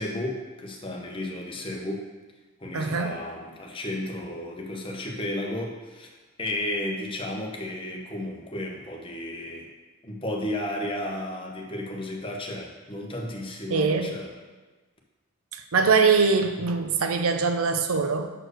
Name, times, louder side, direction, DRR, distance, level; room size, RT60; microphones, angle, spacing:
voice 1, 0.0-2.0 2.6-9.6 10.0-14.3, left 1 dB, 25° left, 0 dB, 0.9 m, -33 dB
voice 2, 2.7-3.1 13.7-14.1 15.5-18.3, right 4 dB, 75° right, 7 dB, 0.6 m, -23 dB
6.4 x 4.5 x 6.3 m, 1.3 s
head